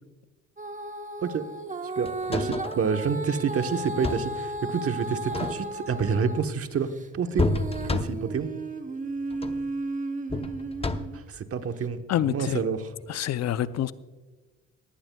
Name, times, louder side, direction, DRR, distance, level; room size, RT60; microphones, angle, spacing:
Female singing, 0.6-6.5 6.9-11.2 11.8-11.9, right 2 dB, 25° right, 1.0 m, -34 dB
voice 1, 1.2-1.5 2.0-7.5 7.8-8.5 11.1-12.9, right 6 dB, 50° right, 1.1 m, -28 dB
sound 1, 2.1-2.9 3.8-4.4 5.2-5.9 7.4-8.4 9.3-9.7 10.3-11.3 13.0-13.1, left 3 dB, 20° left, 0.8 m, -30 dB
voice 2, 12.1-12.6 13.1-13.9, left 11 dB, 60° left, 0.6 m, -26 dB
18.5 x 15.0 x 2.3 m
cardioid pair, 90°, 30 cm